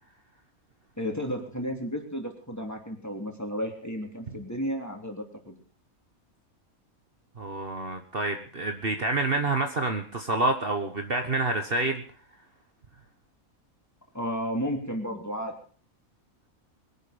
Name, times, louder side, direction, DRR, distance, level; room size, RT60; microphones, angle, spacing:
voice 1, 1.0-5.6 14.1-15.5, equal, 10° left, 2 dB, 3.3 m, -33 dB
voice 2, 7.4-12.0, right 2 dB, 45° right, 5 dB, 1.5 m, -28 dB
22.5 x 11.0 x 5.1 m, 0.43 s
omnidirectional pair, 1.5 m